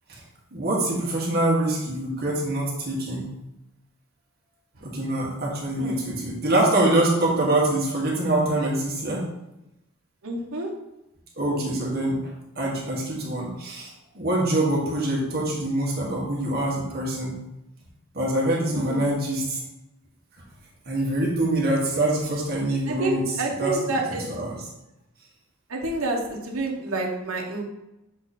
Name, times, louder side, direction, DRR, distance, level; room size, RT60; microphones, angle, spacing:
voice 1, 0.5-3.3 4.8-9.3 11.4-12.2 12.6-13.9 14.1-17.4 18.1-19.6 20.9-24.6, right 1 dB, 45° right, -4 dB, 1.7 m, -25 dB
voice 2, 5.8-6.1 10.2-10.7 18.7-19.1 22.8-24.2 25.7-27.6, right 2 dB, 75° right, 0 dB, 1.1 m, -28 dB
7.0 x 3.2 x 4.2 m, 0.91 s
head